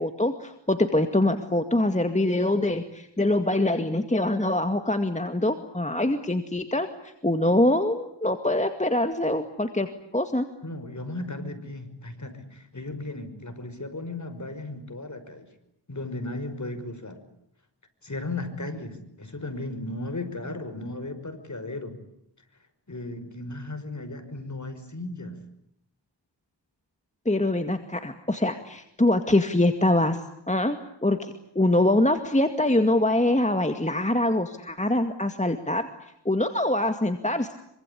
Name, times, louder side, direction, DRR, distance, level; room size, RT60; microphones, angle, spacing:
voice 1, 0.0-9.9 10.1-10.5 27.3-35.9 36.3-37.5, left 1 dB, 15° left, 7 dB, 2.1 m, -24 dB
voice 2, 10.6-15.5 15.9-17.2 18.0-22.0 22.9-25.4, left 2 dB, 40° left, 9 dB, 5.8 m, -35 dB
26.0 x 24.5 x 8.5 m, 0.78 s
wide cardioid pair, 55°, 44 cm